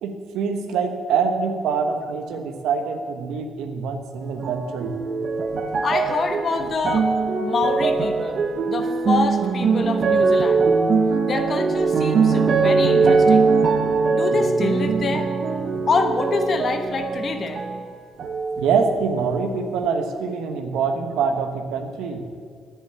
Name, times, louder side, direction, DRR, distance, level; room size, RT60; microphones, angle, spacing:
voice 1, 0.0-4.9 18.6-22.2, right 5 dB, 90° right, 6 dB, 1.1 m, -25 dB
sound 1, 4.4-17.9 18.2-19.1 19.8-19.9, right 4 dB, 55° right, 1.0 m, -21 dB
voice 2, 5.8-7.1 7.4-10.7 11.3-13.5 14.1-15.3 15.9-17.6, left 4 dB, 50° left, 7 dB, 1.1 m, -26 dB
10.0 x 7.1 x 8.1 m, 2.1 s
cardioid pair, 90°, 0 cm